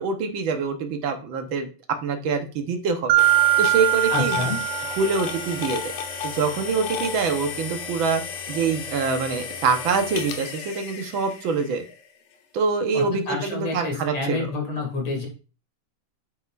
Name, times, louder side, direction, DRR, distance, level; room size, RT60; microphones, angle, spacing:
voice 1, 0.0-1.7 2.0-3.1 3.6-4.4 5.0-5.9 6.2-8.2 8.5-11.8 12.5-14.5, right 4 dB, 60° right, 5 dB, 1.4 m, -25 dB
Mallet percussion, 3.1-5.7, right 16 dB, 85° right, 1.4 m, -22 dB
sound 1, 3.2-12.1, left 6 dB, 80° left, 2.5 m, -33 dB
voice 2, 4.1-4.6 12.9-15.3, left 3 dB, 55° left, 1 dB, 3.4 m, -28 dB
8.9 x 8.1 x 2.5 m, 0.35 s
omnidirectional pair, 3.4 m